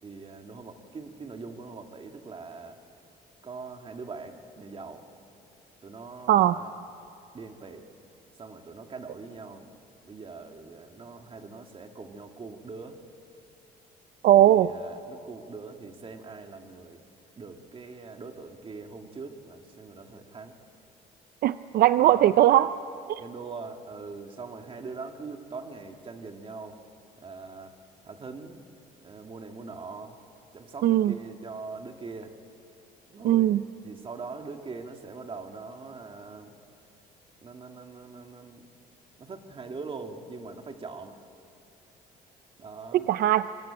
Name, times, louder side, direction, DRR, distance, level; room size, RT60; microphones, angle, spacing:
voice 1, 0.0-2.8 3.4-5.1 5.8-6.7 7.3-7.9 8.4-9.7 10.0-13.0 14.3-17.0 17.4-20.6 22.0-22.4 23.2-26.8 27.2-27.8 28.0-28.6 29.0-30.2 30.5-32.3 33.1-36.5 37.4-38.7 39.2-41.2 42.6-43.1, right 4 dB, 30° right, 4 dB, 2.4 m, -42 dB
voice 2, 14.2-14.7 21.4-22.7 23.1-23.2 30.8-31.1 33.2-33.6 42.9-43.5, right 13 dB, 65° right, 13 dB, 0.6 m, -19 dB
26.0 x 24.0 x 8.9 m, 2.6 s
cardioid pair, 110°, 17 cm